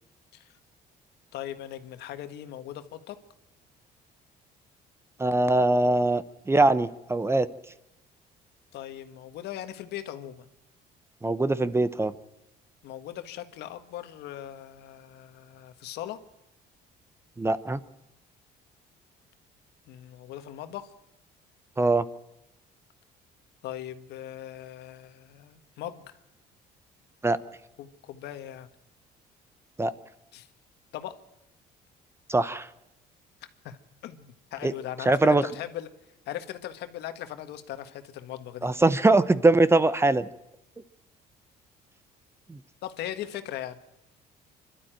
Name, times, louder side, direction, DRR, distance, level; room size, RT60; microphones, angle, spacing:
voice 1, 1.3-3.2 8.7-10.5 12.8-16.2 19.9-20.9 23.6-26.2 27.8-28.7 30.3-30.5 30.9-31.2 33.6-35.9 36.2-38.7 42.8-43.8, left 12 dB, 80° left, 9 dB, 1.5 m, -39 dB
voice 2, 5.2-7.5 11.2-12.1 17.4-17.8 21.8-22.0 27.2-27.4 29.8-29.9 32.3-32.7 34.6-34.7 35.1-35.4 38.6-40.3 42.5-42.6, right 2 dB, 15° right, 15 dB, 0.8 m, -22 dB
25.0 x 12.5 x 9.0 m, 0.91 s
cardioid pair, 110°, 17 cm